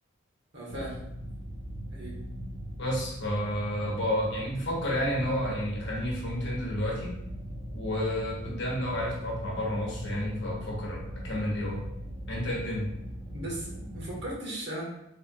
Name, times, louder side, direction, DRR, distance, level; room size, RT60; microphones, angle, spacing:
voice 1, 0.5-1.0 1.9-2.1 13.3-14.8, right 1 dB, 55° right, -4 dB, 1.4 m, -37 dB
sound 1, 0.7-14.2, equal, 25° right, 1.0 m, -40 dB
voice 2, 2.8-7.2 7.7-11.9 12.3-12.9, equal, 60° left, -2 dB, 1.1 m, -31 dB
4.4 x 3.4 x 2.3 m, 0.82 s
head